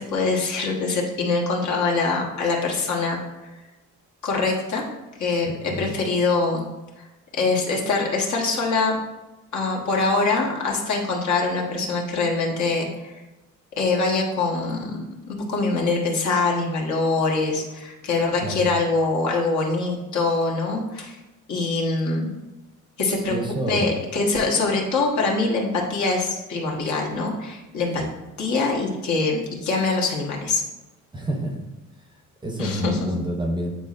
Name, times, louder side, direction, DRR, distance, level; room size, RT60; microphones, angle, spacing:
voice 1, 0.0-3.2 4.2-4.9 5.2-6.7 7.4-9.0 9.5-13.2 13.8-15.0 15.3-21.2 21.5-22.3 23.0-23.3 23.7-28.0 28.4-30.6 32.6-33.1, left 3 dB, 60° left, -1 dB, 1.4 m, -24 dB
voice 2, 5.4-5.9 18.4-18.6 23.3-24.0 28.0-28.1 31.1-31.6 32.4-33.7, equal, 15° right, 2 dB, 0.7 m, -28 dB
8.9 x 4.2 x 2.5 m, 1.0 s
cardioid pair, 130°, 32 cm